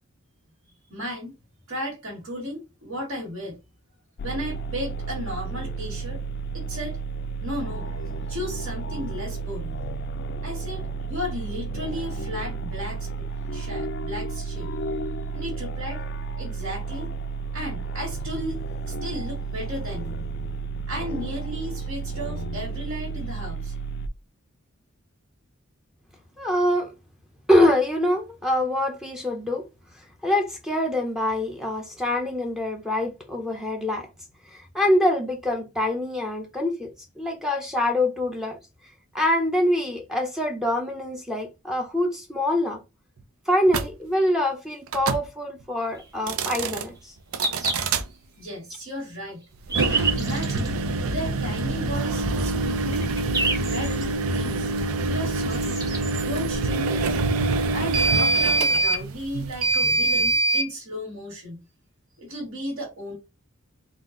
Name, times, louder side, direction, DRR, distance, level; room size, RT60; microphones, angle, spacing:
voice 1, 0.9-1.4 1.7-3.6 4.2-6.2 6.5-7.0 7.4-9.8 10.4-15.0 15.3-16.0 16.4-17.1 17.5-20.1 20.9-23.7 48.4-49.4 50.0-50.8 51.1-53.1 53.7-54.7 55.1-55.8 56.2-57.2 57.7-61.6 62.2-63.2, equal, 65° right, 1.7 m, -35 dB
sound 1, 4.2-24.1, right 3 dB, 50° left, 0.4 m, -32 dB
voice 2, 26.4-26.9 27.5-29.7 30.2-34.1 34.5-36.9 37.2-38.6 39.1-42.8 43.5-47.1, left 1 dB, ahead, 0.6 m, -24 dB
sound 2, 43.7-43.9 44.9-45.2 46.1-46.8 47.3-48.0 49.6-60.7, right 2 dB, 85° right, 0.5 m, -24 dB
sound 3, 45.9-46.1 47.0-47.1 47.4-48.0 48.5-48.6 49.4-50.7 51.5-51.6 52.3-52.4 52.7-54.1 55.2-55.3 55.5-56.2 57.7-57.8 58.0-58.1 58.8-58.9, right 3 dB, 15° right, 1.1 m, -29 dB
4.0 x 2.4 x 3.7 m
head